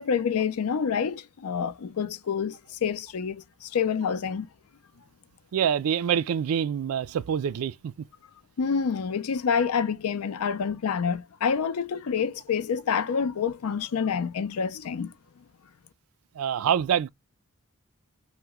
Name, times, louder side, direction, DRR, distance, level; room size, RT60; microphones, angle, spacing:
voice 1, 0.0-4.5 8.6-15.1, left 6 dB, 85° left, 0.4 m, -27 dB
voice 2, 5.5-7.9 16.4-17.1, right 8 dB, 75° right, 0.3 m, -26 dB
2.9 x 2.1 x 3.4 m
head